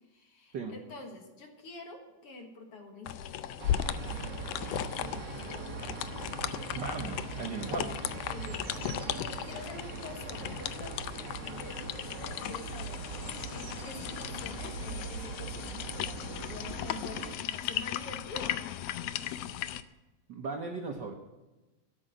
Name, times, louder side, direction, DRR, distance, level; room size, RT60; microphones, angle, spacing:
voice 1, 0.0-3.8 7.5-7.9 8.3-18.6, left 2 dB, 55° left, 3 dB, 2.4 m, -47 dB
sound 1, 3.1-19.8, left 11 dB, 85° left, 1.4 m, -37 dB
sound 2, 3.6-17.3, right 4 dB, 45° right, 1.6 m, -41 dB
voice 2, 6.7-8.0 20.3-21.1, right 4 dB, 65° right, 3 dB, 1.1 m, -37 dB
13.0 x 7.9 x 9.0 m, 1.1 s
omnidirectional pair, 3.4 m